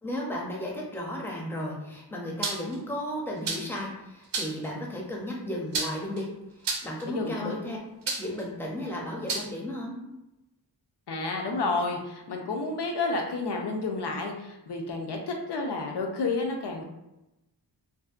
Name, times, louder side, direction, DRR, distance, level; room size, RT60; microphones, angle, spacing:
voice 1, 0.0-6.3 6.6-7.8 8.2-10.0, left 1 dB, 5° left, -3 dB, 0.5 m, -34 dB
sound 1, 2.4-2.8 3.5-3.8 4.3-4.7 5.7-6.2 6.6-7.0 8.1-8.4 9.3-9.5, right 3 dB, 85° right, 0.5 m, -30 dB
voice 2, 7.1-7.5 11.1-16.8, left 3 dB, 75° left, 1 dB, 0.6 m, -30 dB
2.6 x 2.0 x 2.4 m, 0.94 s
wide cardioid pair, 85°, 41 cm